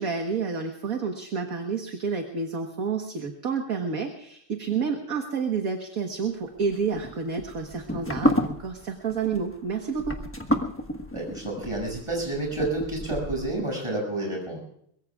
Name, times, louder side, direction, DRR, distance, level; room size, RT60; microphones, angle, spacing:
voice 1, 0.0-10.2, right 5 dB, 45° right, 4 dB, 1.6 m, -29 dB
sound 1, 6.6-13.6, equal, 10° left, 0.7 m, -30 dB
voice 2, 11.1-14.6, right 2 dB, 10° right, -2 dB, 7.0 m, -30 dB
23.0 x 22.5 x 2.4 m, 0.70 s
omnidirectional pair, 2.4 m